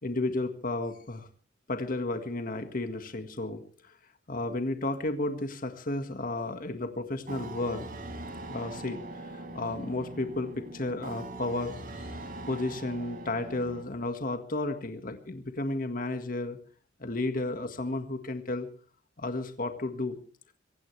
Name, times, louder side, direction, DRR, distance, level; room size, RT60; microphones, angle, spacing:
voice 1, 0.0-1.3 1.7-3.9 4.3-7.9 8.5-12.1 12.5-16.6 17.0-18.7 19.2-20.2, left 2 dB, 50° left, 7 dB, 1.8 m, -33 dB
sound 1, 7.3-13.8, right 2 dB, 50° right, 5.3 m, -41 dB
25.0 x 16.5 x 3.3 m, 0.42 s
head